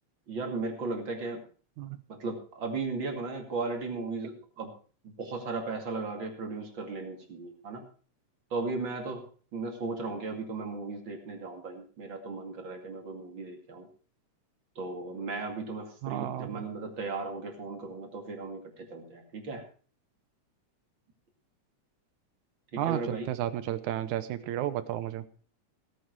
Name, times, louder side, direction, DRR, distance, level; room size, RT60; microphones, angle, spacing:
voice 1, 0.3-1.4 2.1-4.7 5.0-7.8 8.5-9.2 9.5-13.9 14.8-19.6 22.7-23.3, right 3 dB, 40° right, 3 dB, 2.9 m, -36 dB
voice 2, 16.0-16.6 22.8-25.2, right 12 dB, 80° right, 13 dB, 2.3 m, -32 dB
17.0 x 9.4 x 4.7 m, 0.41 s
omnidirectional pair, 3.4 m